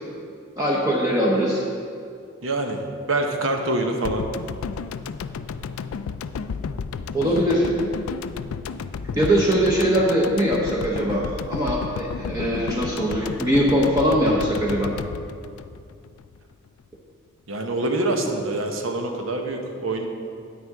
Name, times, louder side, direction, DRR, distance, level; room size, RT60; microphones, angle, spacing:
voice 1, 0.6-1.6 7.1-7.7 9.2-14.9, equal, 15° right, -4 dB, 0.8 m, -21 dB
voice 2, 2.4-2.8 3.1-4.2 17.5-20.1, right 2 dB, 75° right, 3 dB, 1.0 m, -25 dB
sound 1, 4.0-16.4 16.7-16.8, left 5 dB, 90° left, 0.3 m, -32 dB
9.5 x 9.3 x 3.6 m, 2.3 s
head